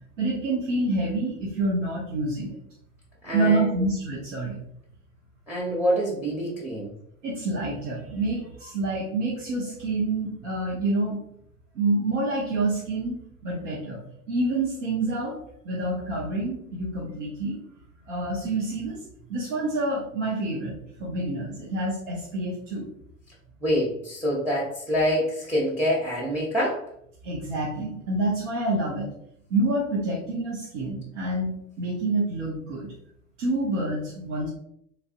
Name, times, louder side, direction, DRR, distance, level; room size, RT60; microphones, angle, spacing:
voice 1, 0.2-2.6 3.3-4.6 7.2-11.2 11.7-13.1 13.4-14.0 14.3-15.4 15.6-17.6 18.1-19.0 19.3-20.7 21.0-22.9 27.2-29.1 29.5-31.5 31.8-32.9 33.4-34.5, right 2 dB, 70° right, -5 dB, 1.0 m, -27 dB
voice 2, 3.2-3.8 5.5-6.9 23.6-26.9, equal, 5° right, -4 dB, 0.8 m, -26 dB
3.4 x 2.5 x 2.5 m, 0.70 s
figure-of-eight pair, 75°, 39 cm